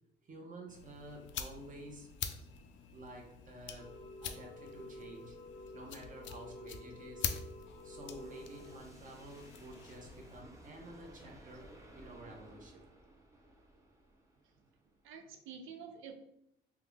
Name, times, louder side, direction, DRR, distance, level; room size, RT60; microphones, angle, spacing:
voice 1, 0.2-2.1 2.9-5.3 5.7-7.3 7.8-12.8, right 1 dB, 40° right, 1 dB, 0.9 m, -51 dB
sound 1, 0.7-10.4, left 8 dB, 70° left, 0.4 m, -45 dB
sound 2, 3.8-8.8, left 2 dB, 25° left, 0.7 m, -51 dB
sound 3, 6.7-15.2, right 1 dB, 15° right, 0.6 m, -58 dB
voice 2, 15.0-16.1, right 6 dB, 85° right, 6 dB, 0.5 m, -49 dB
3.6 x 2.4 x 3.3 m, 0.78 s
cardioid pair, 90°, 20 cm